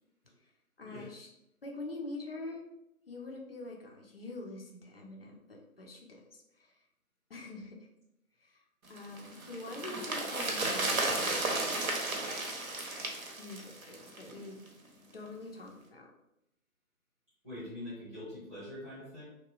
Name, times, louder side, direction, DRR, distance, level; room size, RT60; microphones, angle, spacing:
voice 1, 0.8-1.3 1.6-2.6 3.1-6.8 7.3-7.9 8.4-11.8 12.1-12.3 13.4-14.6 15.1-16.1, left 2 dB, 45° left, 1 dB, 0.5 m, -45 dB
sound 1, 9.0-14.4 14.7-14.8, right 2 dB, 75° right, 0.8 m, -34 dB
voice 2, 17.4-19.2, left 1 dB, 5° right, -13 dB, 0.9 m, -44 dB
2.9 x 2.2 x 2.3 m, 0.82 s
figure-of-eight pair, 150°, 43 cm